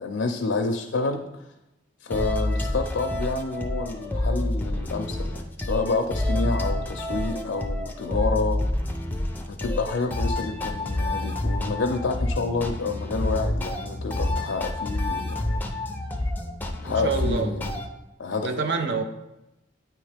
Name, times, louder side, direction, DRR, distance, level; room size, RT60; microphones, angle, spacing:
voice 1, 0.0-1.4 2.0-8.6 9.5-15.7 16.8-17.8 18.2-18.5, left 3 dB, 85° left, 3 dB, 0.5 m, -29 dB
sound 1, 2.1-17.9, left 1 dB, 10° left, 0.5 m, -28 dB
voice 2, 16.8-17.6 18.4-19.0, right 4 dB, 65° right, 7 dB, 0.6 m, -27 dB
9.0 x 3.1 x 3.4 m, 0.95 s
head